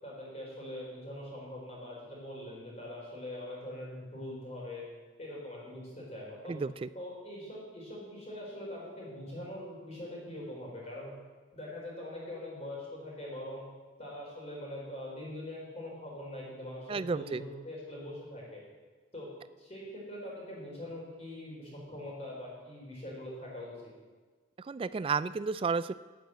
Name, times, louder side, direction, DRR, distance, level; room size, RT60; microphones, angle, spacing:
voice 1, 0.0-4.8 5.2-6.5 6.9-11.1 11.5-13.6 14.0-18.6 19.1-19.3 19.6-23.7, left 1 dB, 35° left, -4 dB, 4.5 m, -43 dB
voice 2, 6.5-6.9 16.9-17.4 24.6-25.9, right 4 dB, 30° right, 16 dB, 0.3 m, -32 dB
9.5 x 9.1 x 7.8 m, 1.4 s
head